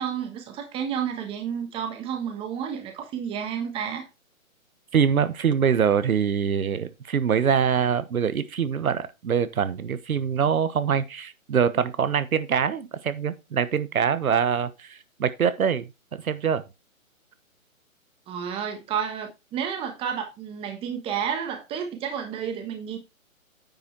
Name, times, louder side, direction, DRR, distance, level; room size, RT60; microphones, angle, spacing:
voice 1, 0.0-4.1 18.3-23.0, right 8 dB, 15° right, 1.3 m, -31 dB
voice 2, 4.9-16.6, right 7 dB, 80° right, 1.2 m, -24 dB
9.4 x 5.1 x 4.5 m
hypercardioid pair, 150°, 42 cm